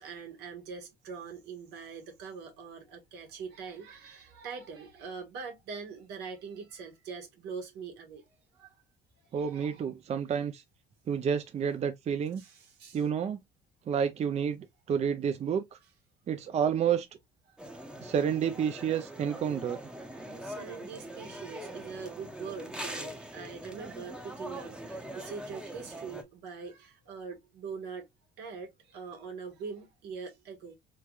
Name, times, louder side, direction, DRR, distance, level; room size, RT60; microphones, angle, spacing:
voice 1, 0.0-8.2 8.5-8.7 9.3-9.8 12.4-13.0 17.5-17.6 20.2-28.1 28.4-30.8, right 5 dB, 85° right, 1.5 m, -43 dB
voice 2, 9.3-10.6 11.1-12.4 12.9-13.4 13.9-15.6 16.3-17.1 18.0-19.8, right 7 dB, 40° right, 0.5 m, -29 dB
sound 1, 17.6-26.2, right 1 dB, 5° right, 0.7 m, -42 dB
3.3 x 3.2 x 2.3 m
cardioid pair, 110°, 17 cm